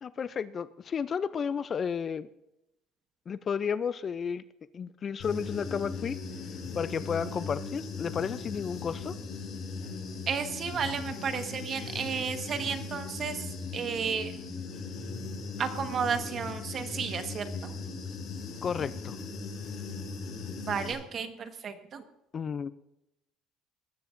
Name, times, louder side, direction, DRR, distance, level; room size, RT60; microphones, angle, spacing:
voice 1, 0.0-2.3 3.3-4.4 4.7-6.2 6.7-9.1 18.6-19.2 22.3-22.7, left 6 dB, 30° left, 15 dB, 0.4 m, -32 dB
Human voice / Buzz, 5.2-20.9, left 4 dB, 50° left, 5.1 m, -38 dB
voice 2, 10.3-13.5 13.7-14.3 15.6-17.5 20.7-22.0, right 6 dB, 35° right, 7 dB, 1.3 m, -32 dB
19.5 x 14.0 x 2.6 m, 0.87 s
cardioid pair, 140°, 0 cm